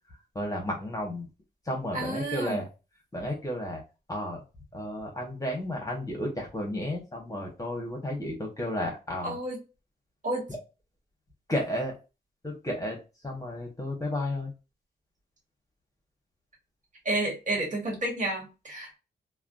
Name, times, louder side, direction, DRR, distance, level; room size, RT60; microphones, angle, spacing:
voice 1, 0.3-1.3 1.6-2.7 3.1-3.8 4.1-4.4 4.7-9.3 10.5-10.6 11.5-12.0 12.4-14.5, left 1 dB, 20° left, 0 dB, 1.3 m, -32 dB
voice 2, 1.9-2.6 9.2-9.6 10.2-10.5 17.0-19.0, right 2 dB, 45° right, -1 dB, 1.5 m, -30 dB
3.2 x 2.3 x 2.5 m, 0.29 s
cardioid pair, 95°, 18 cm